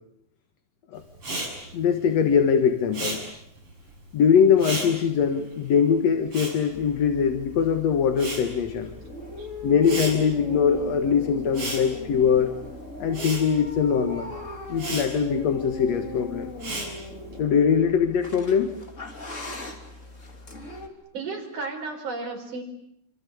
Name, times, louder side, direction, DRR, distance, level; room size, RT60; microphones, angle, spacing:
Respiratory sounds, 1.2-7.6 7.9-17.4, right 2 dB, 45° right, 7.7 m, -36 dB
voice 1, 1.7-3.2 4.1-8.9 9.6-12.5 13.0-14.3 14.7-16.5 17.4-18.7, left 7 dB, 60° left, 7 dB, 2.6 m, -22 dB
Funny Cat Always Grumpy Kitty, 6.7-20.9, left 2 dB, 25° left, 3.1 m, -39 dB
voice 2, 21.1-22.6, right 3 dB, 80° right, 3 dB, 5.9 m, -33 dB
27.5 x 25.0 x 8.5 m, 0.80 s
omnidirectional pair, 3.5 m